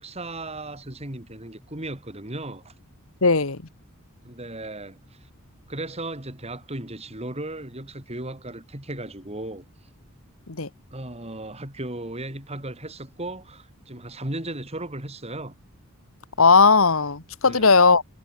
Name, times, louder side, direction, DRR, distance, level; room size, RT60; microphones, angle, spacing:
voice 1, 0.0-2.7 4.2-5.0 5.7-9.6 10.9-15.6 17.5-17.7, right 1 dB, 30° right, 4.1 m, -36 dB
voice 2, 3.2-3.6 10.5-10.7 16.4-18.0, left 4 dB, 70° left, 1.7 m, -17 dB
head